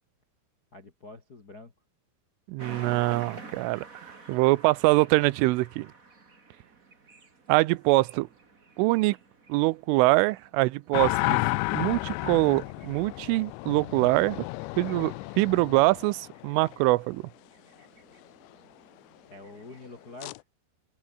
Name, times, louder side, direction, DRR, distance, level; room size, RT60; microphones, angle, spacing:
voice 1, 0.7-1.7 19.3-20.4, left 2 dB, 35° left, 1.7 m, -46 dB
voice 2, 2.5-3.9 4.3-5.9 7.5-8.3 8.8-9.2 9.5-11.4 11.7-14.4 14.8-17.2, right 21 dB, 90° right, 3.3 m, -24 dB
sound 1, 2.6-20.2, right 3 dB, 20° right, 2.5 m, -51 dB
sound 2, 10.9-16.8 20.2-20.4, left 23 dB, 85° left, 2.7 m, -32 dB
omnidirectional pair, 5.6 m